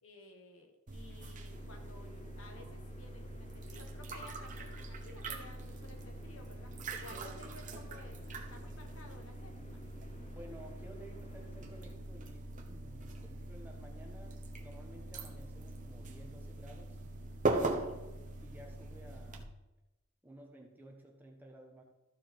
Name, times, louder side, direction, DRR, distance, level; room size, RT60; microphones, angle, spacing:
voice 1, 0.0-6.7 7.0-9.8 17.4-17.9, left 2 dB, 70° left, 3 dB, 1.5 m, -55 dB
sound 1, 0.9-19.4, right 2 dB, 35° right, 1.0 m, -41 dB
sound 2, 1.5-12.0, left 1 dB, 30° left, 0.7 m, -57 dB
voice 2, 10.1-17.0 17.4-17.9 18.4-19.5 20.2-21.8, right 1 dB, 10° right, 1 dB, 1.2 m, -54 dB
14.0 x 4.8 x 4.6 m, 1.0 s
head